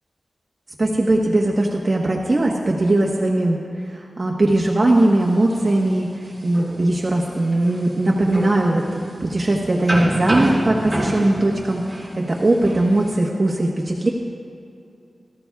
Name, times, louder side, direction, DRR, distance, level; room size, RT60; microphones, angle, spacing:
voice 1, 0.8-3.6 3.9-14.1, right 2 dB, 40° right, -2 dB, 1.2 m, -19 dB
sound 1, 4.9-13.2, right 1 dB, 20° right, 2.5 m, -29 dB
23.0 x 14.0 x 2.4 m, 2.5 s
wide cardioid pair, 115°, 0 cm